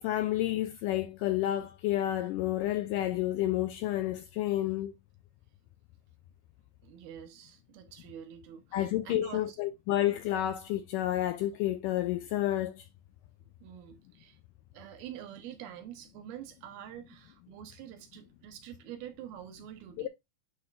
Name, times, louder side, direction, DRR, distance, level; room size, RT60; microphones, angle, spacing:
voice 1, 0.0-4.9 8.7-12.9 20.0-20.1, left 13 dB, 85° left, 1.9 m, -30 dB
voice 2, 6.8-9.6 13.4-14.4 14.7-20.1, right 10 dB, 85° right, 3.0 m, -46 dB
9.5 x 3.9 x 2.5 m
omnidirectional pair, 4.2 m